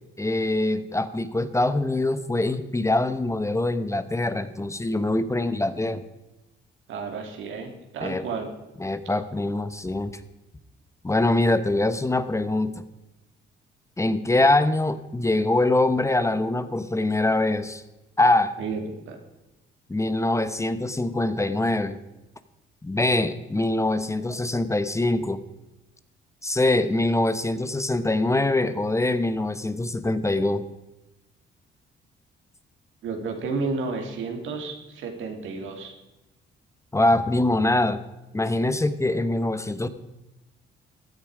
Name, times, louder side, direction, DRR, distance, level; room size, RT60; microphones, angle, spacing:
voice 1, 0.2-6.0 8.0-8.2 8.8-10.2 11.0-12.7 14.0-17.8 18.2-18.5 19.9-22.0 22.8-25.4 26.4-30.6 36.9-38.0 38.3-39.9, left 2 dB, 15° left, 12 dB, 0.9 m, -23 dB
voice 2, 6.9-8.5 18.6-19.2 33.0-35.9, right 4 dB, 80° right, 4 dB, 2.7 m, -32 dB
16.0 x 10.5 x 4.9 m, 1.0 s
cardioid pair, 90°, 20 cm